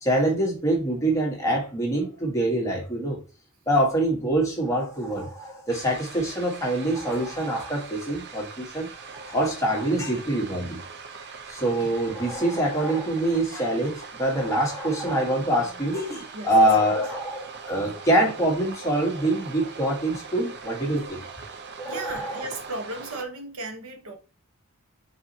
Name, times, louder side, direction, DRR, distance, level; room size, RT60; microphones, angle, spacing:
voice 1, 0.0-3.2 3.7-10.8 11.5-21.2 21.8-22.4, right 1 dB, 15° left, 1.4 m, -25 dB
sound 1, 5.7-23.2, right 5 dB, 50° right, 0.6 m, -41 dB
voice 2, 16.3-17.1 21.8-24.1, right 2 dB, 70° right, 1.0 m, -36 dB
4.6 x 4.1 x 2.8 m
head